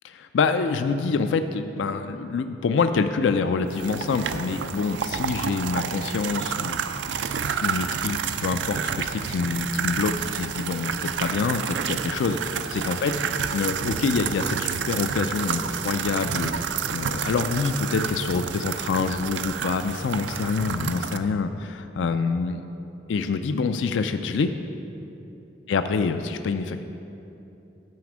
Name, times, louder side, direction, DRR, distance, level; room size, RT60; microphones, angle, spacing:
voice 1, 0.0-6.8 7.6-13.1 13.5-22.6 23.1-24.5 25.7-26.8, left 4 dB, 80° left, 9 dB, 0.4 m, -26 dB
sound 1, 3.7-21.2, right 7 dB, 75° right, 0.4 m, -29 dB
9.4 x 4.9 x 7.2 m, 2.9 s
head